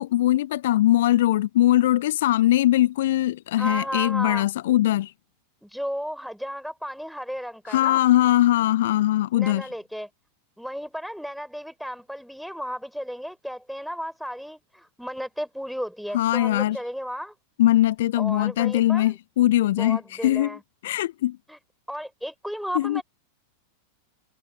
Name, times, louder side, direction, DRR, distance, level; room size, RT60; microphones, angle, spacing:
voice 1, 0.0-5.1 7.7-9.7 16.1-16.8 17.6-20.6 20.8-21.4 22.7-23.0, left 14 dB, 55° left, 0.3 m, -21 dB
voice 2, 3.6-4.5 5.6-8.0 9.3-10.1 10.6-17.3 18.1-19.2 19.7-20.6 21.5-21.6 21.9-23.0, equal, ahead, 4.9 m, -34 dB
figure-of-eight pair, 90°, 0 cm